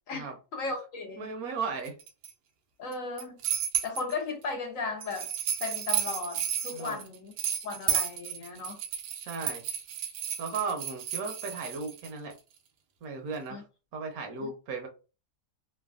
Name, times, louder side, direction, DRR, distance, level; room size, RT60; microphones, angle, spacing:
voice 1, 0.1-1.3 2.8-3.4 3.8-5.3 5.6-7.3 7.6-8.8 13.5-13.6 14.4-14.5, left 4 dB, 65° left, 0.9 m, -36 dB
voice 2, 1.2-1.9 6.7-7.0 9.1-9.6 10.4-12.3 13.0-13.6 13.9-14.9, right 4 dB, 65° right, 1.1 m, -36 dB
sound 1, 1.9-2.3 2.9-4.1 5.0-12.1, right 9 dB, 85° right, 1.2 m, -32 dB
3.2 x 2.1 x 2.3 m
omnidirectional pair, 1.7 m